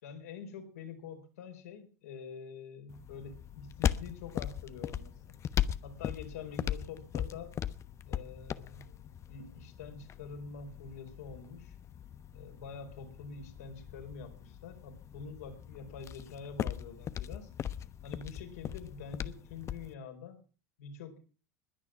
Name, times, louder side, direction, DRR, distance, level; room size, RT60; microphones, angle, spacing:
voice 1, 0.0-5.1 5.8-7.5 8.1-9.0 9.3-11.8 12.3-17.5 18.0-20.5 20.8-21.2, left 6 dB, 75° left, 6 dB, 4.6 m, -46 dB
sound 1, 2.9-19.9, left 9 dB, 35° left, 1.1 m, -39 dB
21.0 x 9.5 x 6.0 m, 0.38 s
hypercardioid pair, 85°, 8 cm